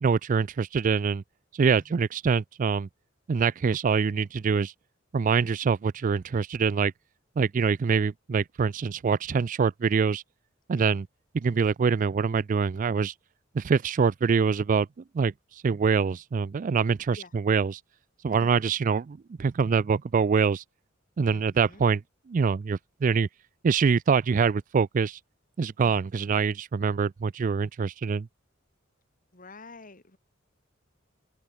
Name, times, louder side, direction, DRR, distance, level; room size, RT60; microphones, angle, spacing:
voice 1, 0.0-1.2 1.5-2.9 3.3-4.7 5.1-6.9 7.4-10.2 10.7-11.1 11.3-13.1 13.5-14.9 15.1-15.3 15.6-17.8 18.2-20.6 21.2-22.0 22.3-23.3 23.6-25.2 25.6-28.3, right 5 dB, 40° right, 0.4 m, -24 dB
voice 2, 21.3-21.8 25.8-26.0 29.3-30.2, left 2 dB, 45° left, 3.5 m, -49 dB
open air
head